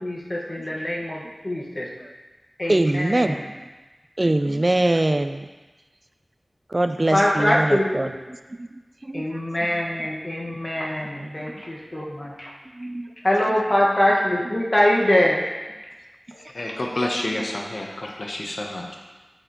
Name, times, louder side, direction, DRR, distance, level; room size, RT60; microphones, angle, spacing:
voice 1, 0.0-1.9 2.6-3.5 7.1-8.1 9.1-12.5 13.2-15.4, left 1 dB, 40° left, -3 dB, 1.5 m, -23 dB
voice 2, 2.7-3.4 4.2-5.5 6.7-8.1 8.6-8.7 9.0-9.4 9.7-9.8 11.1-11.4 12.8-13.1 13.5-13.6, right 1 dB, 40° right, 9 dB, 0.3 m, -23 dB
voice 3, 16.3-19.0, left 1 dB, 70° left, 0 dB, 0.9 m, -29 dB
7.8 x 6.4 x 3.0 m, 1.2 s
wide cardioid pair, 40°, 0 cm